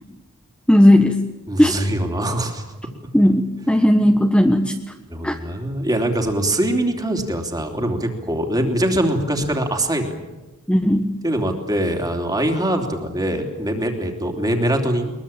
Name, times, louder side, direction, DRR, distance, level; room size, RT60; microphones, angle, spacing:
voice 1, 0.7-1.1 1.6-1.7 3.1-4.7 5.2-5.3 10.7-11.1, left 1 dB, 5° left, 4 dB, 1.2 m, -15 dB
voice 2, 1.5-2.6 5.1-10.2 11.2-15.1, right 1 dB, 15° right, 4 dB, 3.2 m, -23 dB
22.5 x 22.0 x 8.9 m, 1.1 s
head